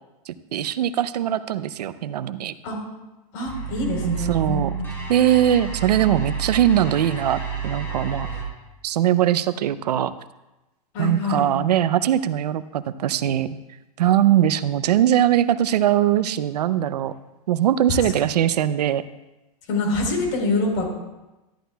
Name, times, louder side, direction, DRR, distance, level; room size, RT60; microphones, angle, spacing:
voice 1, 0.3-2.5 4.0-4.7 5.1-8.3 8.8-10.1 11.0-13.5 14.0-17.1 17.5-19.0, right 11 dB, 90° right, 14 dB, 0.6 m, -21 dB
voice 2, 3.3-4.8 10.9-11.5 19.7-20.9, left 2 dB, 50° left, 0 dB, 3.8 m, -25 dB
sound 1, 3.5-8.4, right 6 dB, 10° left, 2.9 m, -30 dB
13.5 x 11.0 x 2.3 m, 1.0 s
supercardioid pair, 155°, 20 cm